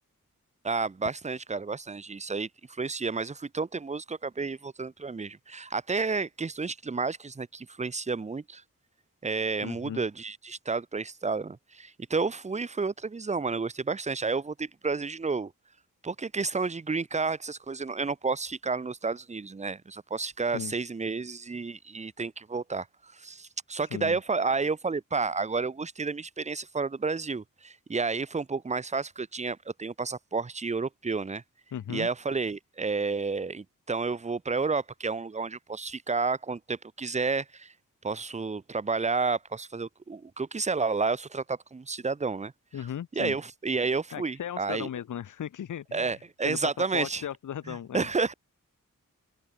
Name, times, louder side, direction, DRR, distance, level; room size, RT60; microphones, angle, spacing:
voice 1, 0.6-8.6 9.2-15.5 16.0-22.9 23.1-31.4 31.9-37.7 38.0-42.5 43.1-44.9 45.9-47.2 47.7-48.3, right 4 dB, 20° right, 0.6 m, -31 dB
voice 2, 9.6-10.0 20.5-20.7 23.7-24.2 31.7-32.1 42.7-43.4 44.1-48.1, left 9 dB, 65° left, 0.6 m, -37 dB
wide cardioid pair, 95°, 33 cm